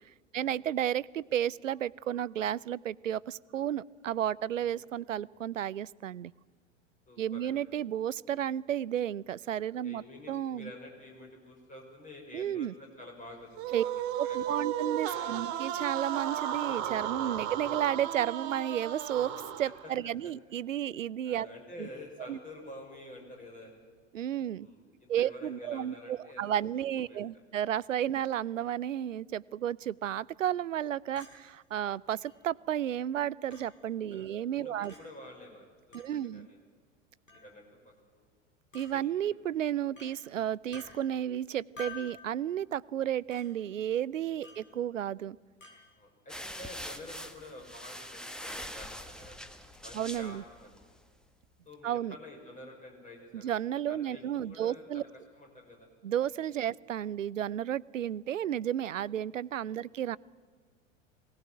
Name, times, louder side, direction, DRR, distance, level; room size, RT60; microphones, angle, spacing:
voice 1, 0.3-6.3 7.2-10.7 12.3-12.7 13.7-13.8 14.2-19.3 19.6-21.5 21.8-21.9 22.3-22.4 24.1-24.7 25.1-34.9 35.9-36.5 38.7-45.4 49.9-50.4 51.8-52.2 53.3-55.0 56.0-60.2, right 10 dB, 75° right, 22 dB, 0.6 m, -32 dB
voice 2, 7.1-7.5 9.8-14.8 15.1-15.4 17.2-17.4 20.2-20.3 21.2-23.7 24.5-26.6 27.0-27.2 28.1-28.2 34.0-36.6 37.3-38.2 38.9-39.3 44.5-44.6 45.9-49.4 49.8-50.8 51.7-53.5 53.9-55.1 55.3-55.9 59.6-59.8, left 1 dB, 20° left, 1 dB, 5.9 m, -49 dB
sound 1, 13.6-19.9, right 10 dB, 45° right, 2.4 m, -34 dB
Chink clink, 31.2-31.3 32.2-32.3 33.5-33.7 34.8-35.0 35.9-36.1 37.3-37.5 38.7-38.9 40.0-40.1 40.7-40.9 41.8-42.1 43.3-43.4 44.4-44.7 45.6-45.8, left 4 dB, 75° left, 5.6 m, -47 dB
sound 2, 46.3-51.0, equal, ahead, 1.3 m, -43 dB
22.5 x 18.0 x 9.1 m, 1.5 s
figure-of-eight pair, 85°, 38 cm